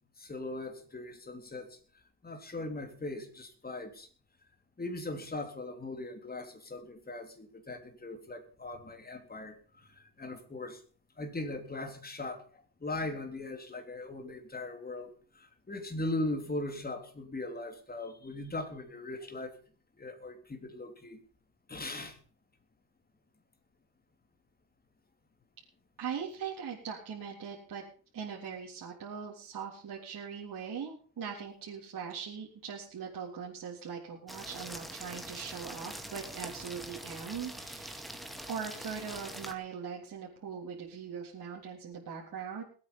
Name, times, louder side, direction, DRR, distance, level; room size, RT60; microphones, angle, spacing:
voice 1, 0.2-1.8 2.2-4.1 4.8-10.8 11.2-15.1 15.3-19.5 20.0-21.2 21.7-22.2, left 2 dB, 20° left, 6 dB, 3.6 m, -39 dB
voice 2, 26.0-27.8 28.1-38.1 38.5-42.6, right 7 dB, 45° right, -3 dB, 3.7 m, -41 dB
sound 1, 34.3-39.5, equal, ahead, 2.3 m, -44 dB
20.5 x 9.0 x 5.4 m, 0.42 s
supercardioid pair, 90°, 48 cm